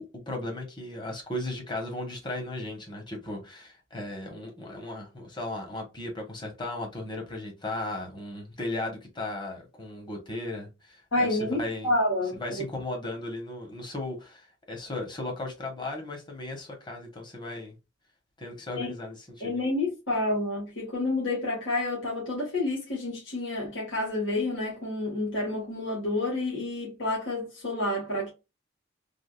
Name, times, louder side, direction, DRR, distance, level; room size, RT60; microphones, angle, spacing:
voice 1, 0.0-11.9 12.4-17.7 18.4-19.6, left 2 dB, 25° left, 1.1 m, -36 dB
voice 2, 11.1-12.4 18.7-18.9 19.4-28.3, left 2 dB, 85° left, 1.5 m, -29 dB
3.5 x 2.4 x 2.4 m
head